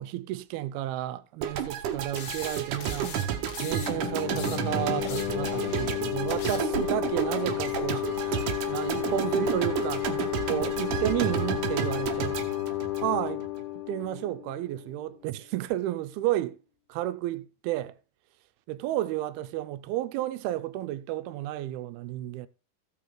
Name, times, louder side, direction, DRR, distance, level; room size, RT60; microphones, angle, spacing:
voice 1, 0.0-3.1 3.6-10.1 10.5-12.4 13.0-13.5 13.8-16.6 16.9-18.0 18.7-22.5, right 14 dB, 85° right, 2.5 m, -32 dB
sound 1, 1.4-13.6, right 9 dB, 65° right, 2.3 m, -32 dB
sound 2, 2.2-3.9 4.2-6.8, left 5 dB, 60° left, 2.3 m, -41 dB
sound 3, 3.6-15.0, left 17 dB, 80° left, 2.5 m, -32 dB
16.0 x 5.6 x 3.8 m
omnidirectional pair, 4.4 m